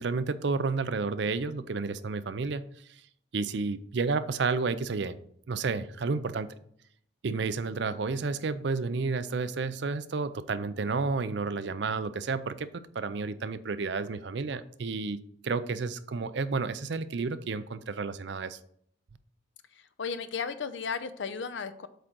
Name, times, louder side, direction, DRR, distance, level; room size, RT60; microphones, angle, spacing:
voice 1, 0.0-2.6 2.9-3.0 3.3-5.2 5.5-6.5 7.2-12.7 12.9-18.6, right 4 dB, 60° right, 13 dB, 0.5 m, -31 dB
voice 2, 20.0-21.9, left 5 dB, 70° left, 12 dB, 0.6 m, -34 dB
8.1 x 3.8 x 6.0 m, 0.67 s
head